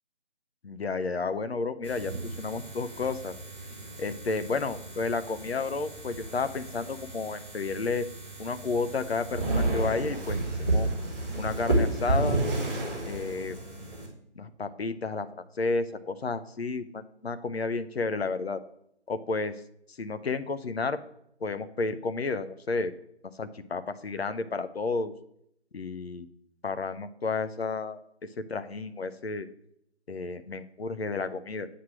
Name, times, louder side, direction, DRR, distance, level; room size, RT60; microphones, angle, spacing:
voice 1, 0.6-3.3 4.0-8.1 8.4-10.9 11.3-12.4 13.0-13.6 14.4-15.3 15.6-18.6 19.1-19.5 19.9-21.0 21.4-22.9 23.4-25.1 25.7-26.3 26.6-28.0 28.4-29.5 30.1-31.7, left 4 dB, 60° left, 11 dB, 0.7 m, -31 dB
sound 1, 1.8-14.1, right 2 dB, 10° left, 0.8 m, -32 dB
8.0 x 3.3 x 6.1 m, 0.74 s
figure-of-eight pair, 165°, 35 cm